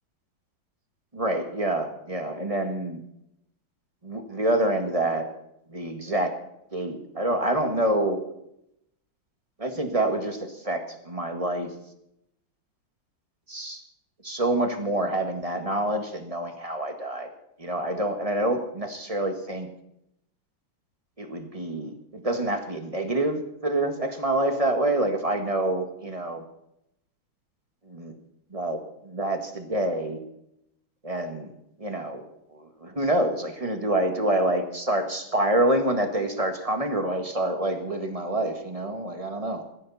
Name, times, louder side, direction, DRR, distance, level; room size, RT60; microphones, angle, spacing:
voice 1, 1.1-3.0 4.0-5.2 5.7-6.3 6.7-8.2 9.6-11.7 13.5-13.8 14.2-17.3 17.6-19.7 21.2-26.4 27.9-28.1 28.5-30.2 31.0-31.5 31.8-32.2 32.5-39.6, right 1 dB, 20° right, 5 dB, 1.8 m, -27 dB
21.0 x 15.5 x 4.3 m, 0.79 s
omnidirectional pair, 2.1 m